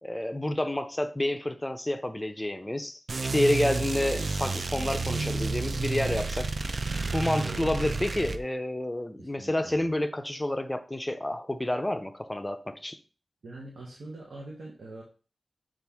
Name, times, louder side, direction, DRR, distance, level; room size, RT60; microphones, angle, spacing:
voice 1, 0.0-6.5 7.1-13.0, left 1 dB, 15° left, 0.5 m, -29 dB
sound 1, 3.1-8.4, right 3 dB, 60° right, 0.3 m, -31 dB
voice 2, 9.2-9.8 13.4-15.0, right 2 dB, 85° right, 0.8 m, -43 dB
5.7 x 2.5 x 3.4 m
wide cardioid pair, 80°, 0 cm